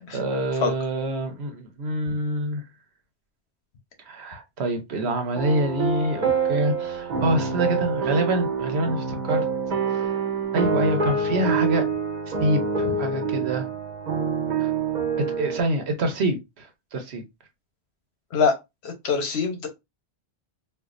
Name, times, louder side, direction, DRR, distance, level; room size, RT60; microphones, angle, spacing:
voice 1, 0.0-2.6 4.1-9.4 10.5-11.9 12.4-13.7 14.6-14.7 15.2-17.2, right 1 dB, 85° right, 1.1 m, -26 dB
sound 1, 5.3-15.6, right 5 dB, 45° right, 0.8 m, -26 dB
voice 2, 18.8-19.7, left 5 dB, 85° left, 1.2 m, -23 dB
4.4 x 2.4 x 2.5 m
omnidirectional pair, 1.1 m